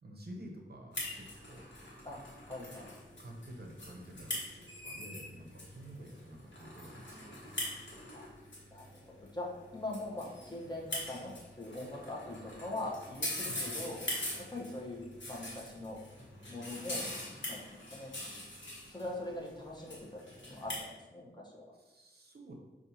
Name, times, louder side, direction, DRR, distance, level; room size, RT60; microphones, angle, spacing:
voice 1, 0.0-1.7 3.2-7.3 13.4-13.8 21.8-22.5, right 1 dB, 55° right, 0 dB, 0.6 m, -50 dB
sound 1, 0.9-20.8, left 1 dB, 70° left, 1.2 m, -43 dB
voice 2, 2.5-2.9 8.1-8.3 8.7-9.5 9.7-14.0 14.5-16.0 16.5-17.0 17.5-18.1 18.8-21.6, left 2 dB, 20° left, -4 dB, 0.9 m, -42 dB
5.3 x 2.5 x 2.7 m, 1.2 s
wide cardioid pair, 55°, 20 cm